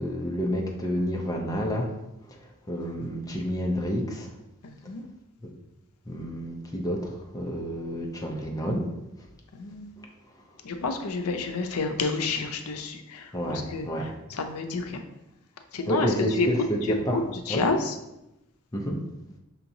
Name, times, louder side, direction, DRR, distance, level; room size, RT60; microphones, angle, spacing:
voice 1, 0.0-1.9 2.3-2.4 2.7-4.3 5.4-5.5 6.1-8.9 13.3-14.1 15.9-17.2 17.5-17.6 18.7-19.0, equal, 15° left, 0 dB, 0.6 m, -29 dB
voice 2, 4.6-5.0 9.5-9.9 10.6-15.0 15.7-16.5 16.8-18.0, left 3 dB, 85° left, 5 dB, 0.5 m, -30 dB
5.6 x 2.9 x 2.6 m, 0.90 s
head